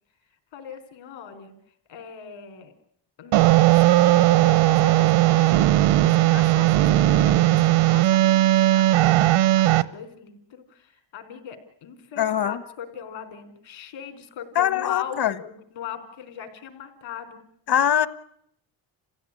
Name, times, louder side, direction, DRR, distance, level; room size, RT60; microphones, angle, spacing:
voice 1, 0.5-1.5 1.9-2.7 3.2-3.4 3.8-5.7 6.0-17.4, left 8 dB, 70° left, 7 dB, 4.7 m, -39 dB
sound 1, 3.3-9.8, right 15 dB, 85° right, 1.0 m, -17 dB
voice 2, 12.2-12.6 14.5-15.3 17.7-18.1, left 10 dB, 50° left, 15 dB, 1.5 m, -22 dB
29.0 x 16.0 x 9.9 m, 0.72 s
cardioid pair, 120°, 48 cm